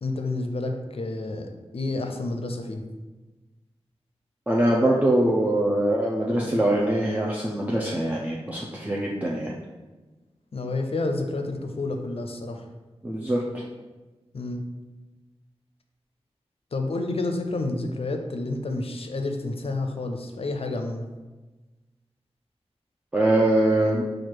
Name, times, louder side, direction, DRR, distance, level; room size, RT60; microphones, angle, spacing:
voice 1, 0.0-2.8 10.5-12.7 14.3-14.6 16.7-21.1, left 2 dB, 60° left, 5 dB, 0.5 m, -29 dB
voice 2, 4.5-9.5 13.0-13.6 23.1-24.1, right 1 dB, 15° right, -4 dB, 0.6 m, -23 dB
4.2 x 2.5 x 4.5 m, 1.2 s
cardioid pair, 40°, 11 cm